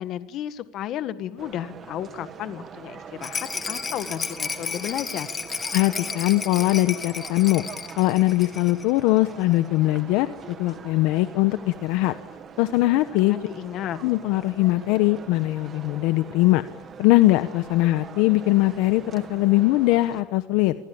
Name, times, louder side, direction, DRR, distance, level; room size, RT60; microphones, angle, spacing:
voice 1, 0.0-5.3 13.1-14.0, left 11 dB, 40° left, 11 dB, 1.7 m, -33 dB
sound 1, 1.4-20.2, right 6 dB, 25° right, 2.1 m, -42 dB
Rattle, 3.2-8.9 9.2-9.3 9.5-9.6, left 5 dB, 15° left, 1.6 m, -33 dB
voice 2, 5.7-7.7 8.0-12.2 12.6-13.4 14.0-16.6 17.0-20.8, left 18 dB, 60° left, 11 dB, 1.1 m, -21 dB
27.5 x 24.0 x 8.7 m, 1.1 s
cardioid pair, 155°, 0 cm